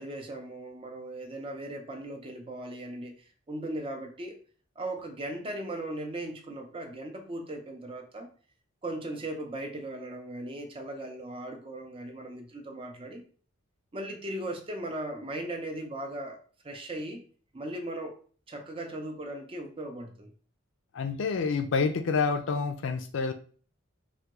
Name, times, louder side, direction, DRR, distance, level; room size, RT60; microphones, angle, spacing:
voice 1, 0.0-4.4 4.8-8.3 8.8-13.2 13.9-17.2 17.5-18.2 18.5-20.3, right 1 dB, 25° right, 0.6 m, -38 dB
voice 2, 20.9-23.3, left 5 dB, 65° left, 0.4 m, -28 dB
3.4 x 2.2 x 2.9 m
head